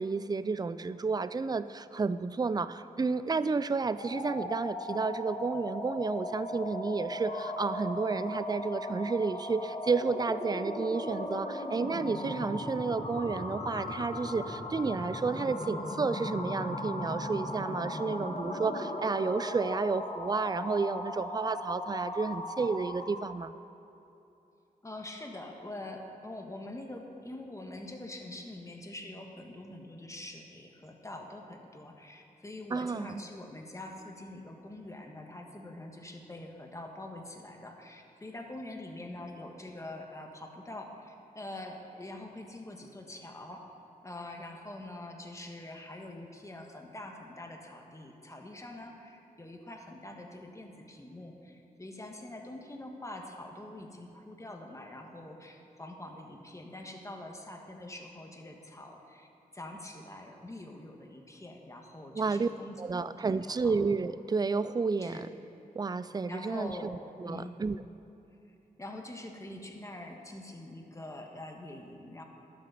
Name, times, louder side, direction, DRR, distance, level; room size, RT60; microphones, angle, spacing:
voice 1, 0.0-23.5 32.7-33.2 62.1-62.5 62.8-65.3 65.7-67.8, right 4 dB, 25° right, 14 dB, 0.4 m, -31 dB
sound 1, 4.0-23.3, left 1 dB, 45° left, 1.9 m, -37 dB
voice 2, 24.8-43.7 44.0-59.3 59.5-63.8 65.0-65.2 66.3-67.5 68.8-72.2, left 1 dB, 20° left, 2 dB, 1.4 m, -44 dB
12.0 x 7.9 x 6.8 m, 2.8 s
wide cardioid pair, 80°, 15 cm